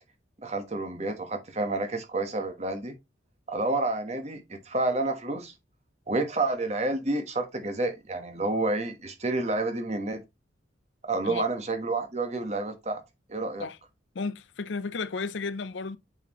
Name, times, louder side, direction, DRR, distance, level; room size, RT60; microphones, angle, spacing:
voice 1, 0.4-2.9 3.5-5.5 6.1-10.2 11.1-13.0 13.3-13.7, right 2 dB, 35° right, 1.2 m, -29 dB
voice 2, 14.1-16.0, left 4 dB, 75° left, 0.6 m, -33 dB
8.2 x 4.4 x 3.0 m
head